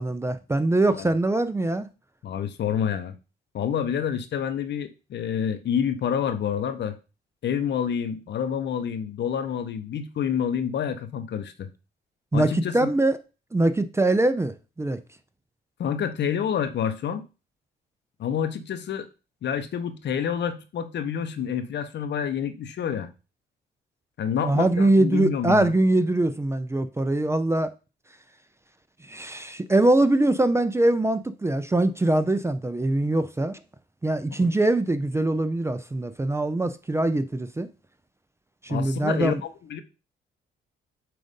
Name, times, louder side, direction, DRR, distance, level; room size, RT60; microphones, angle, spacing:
voice 1, 0.0-1.9 12.3-13.2 13.5-15.0 24.4-27.7 29.0-33.6 34.0-37.7 38.6-39.4, right 2 dB, 15° right, 0.5 m, -23 dB
voice 2, 2.2-3.1 3.5-7.0 7.4-11.7 12.3-12.9 15.8-17.2 18.2-19.1 19.4-23.1 24.2-25.7 38.7-39.8, left 8 dB, 60° left, 0.9 m, -28 dB
7.7 x 2.6 x 5.2 m
cardioid pair, 90°, 20 cm